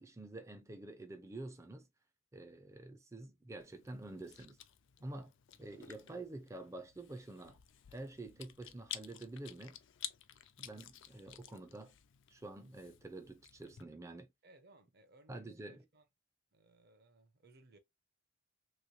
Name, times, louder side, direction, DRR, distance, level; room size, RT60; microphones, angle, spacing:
voice 1, 0.0-1.9 2.3-4.6 5.0-5.3 5.6-7.6 7.9-9.8 10.6-12.0 12.3-14.3 15.3-15.8, right 2 dB, 15° right, 0.4 m, -48 dB
Chewing mastication, 3.6-13.8, left 12 dB, 60° left, 0.4 m, -53 dB
voice 2, 14.4-16.0 16.5-17.8, right 2 dB, 50° right, 0.7 m, -63 dB
3.1 x 3.0 x 2.6 m
head